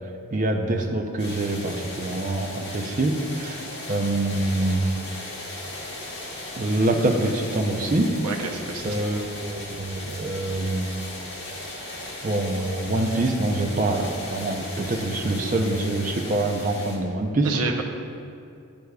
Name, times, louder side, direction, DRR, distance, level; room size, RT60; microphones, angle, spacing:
voice 1, 0.3-3.6 3.9-4.9 6.6-8.1 8.8-11.0 12.2-17.5, right 2 dB, 35° right, 3 dB, 0.5 m, -25 dB
sound 1, 1.2-17.0, left 1 dB, 50° left, 1.5 m, -37 dB
voice 2, 8.2-9.0 14.9-15.0 17.4-17.8, right 4 dB, 80° right, 2 dB, 0.7 m, -30 dB
10.5 x 6.5 x 2.3 m, 2.4 s
head